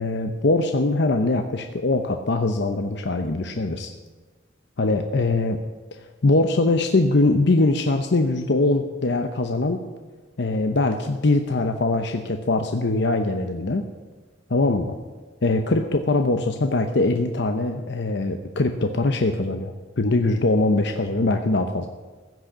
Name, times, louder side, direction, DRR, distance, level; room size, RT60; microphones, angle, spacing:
voice 1, 0.0-3.9 4.8-5.6 6.2-9.8 10.4-13.9 14.5-14.9 15.4-21.9, left 2 dB, 65° left, 6 dB, 0.8 m, -22 dB
15.5 x 6.4 x 8.4 m, 1.3 s
head